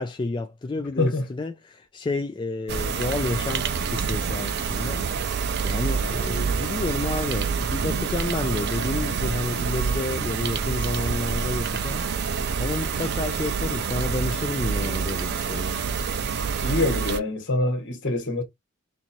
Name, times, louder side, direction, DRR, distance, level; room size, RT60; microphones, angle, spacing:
voice 1, 0.0-3.7 3.9-5.4 5.6-15.9, left 3 dB, 20° left, 0.3 m, -30 dB
sound 1, 2.7-17.2, right 6 dB, 50° right, 0.4 m, -27 dB
voice 2, 16.6-18.4, left 2 dB, 60° left, 1.4 m, -25 dB
4.4 x 2.5 x 2.9 m
head